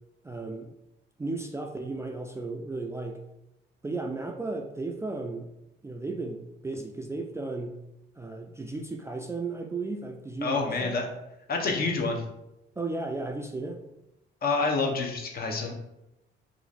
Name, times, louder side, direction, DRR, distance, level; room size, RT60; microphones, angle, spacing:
voice 1, 0.2-0.7 1.2-3.2 3.8-5.5 5.8-7.8 8.2-11.0 12.8-13.8, right 3 dB, 15° right, 3 dB, 0.3 m, -34 dB
voice 2, 10.4-11.1 11.5-12.2 14.4-15.7, left 3 dB, 50° left, 2 dB, 0.8 m, -27 dB
2.9 x 2.5 x 4.0 m, 0.87 s
cardioid pair, 90°, 20 cm